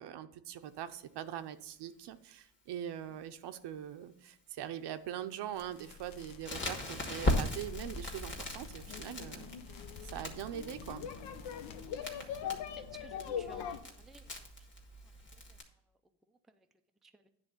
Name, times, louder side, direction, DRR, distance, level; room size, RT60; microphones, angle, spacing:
voice 1, 0.0-9.6 10.0-11.1 12.0-12.4, right 10 dB, 70° right, 10 dB, 0.7 m, -42 dB
sound 1, 5.5-11.9, left 6 dB, 50° left, 0.9 m, -56 dB
Crackle, 6.4-15.6, left 1 dB, 25° left, 1.5 m, -39 dB
sound 2, 7.6-13.8, left 8 dB, 80° left, 0.8 m, -43 dB
voice 2, 12.8-14.3 14.6-14.7 15.3-15.6 16.3-16.7 17.0-17.2, right 3 dB, ahead, 6 dB, 0.3 m, -57 dB
10.0 x 3.5 x 6.8 m, 0.73 s
cardioid pair, 130°, 42 cm